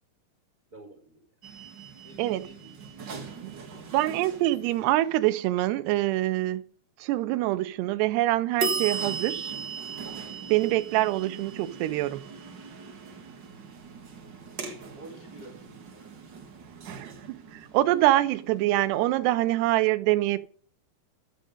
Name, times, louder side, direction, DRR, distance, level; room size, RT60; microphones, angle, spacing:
voice 1, 0.7-1.3 2.0-2.7 3.1-3.6 14.9-16.2, right 1 dB, 30° right, 1.8 m, -50 dB
sound 1, 1.4-5.2 8.6-19.3, right 5 dB, 50° right, 1.3 m, -38 dB
voice 2, 3.9-6.6 7.0-9.5 10.5-12.2 16.9-20.4, right 16 dB, 80° right, 2.8 m, -25 dB
12.5 x 7.8 x 5.2 m
omnidirectional pair, 5.0 m